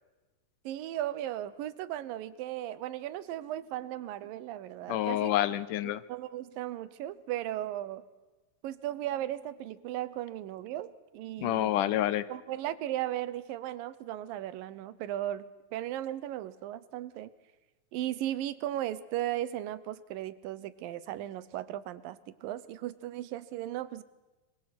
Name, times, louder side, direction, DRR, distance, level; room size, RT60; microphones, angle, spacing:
voice 1, 0.6-5.3 5.8-8.0 8.6-11.7 12.3-17.3 17.9-24.0, right 13 dB, 90° right, 16 dB, 2.7 m, -36 dB
voice 2, 4.9-6.0 11.4-12.3, left 13 dB, 75° left, 16 dB, 2.4 m, -28 dB
26.5 x 24.0 x 6.0 m, 1.2 s
omnidirectional pair, 3.9 m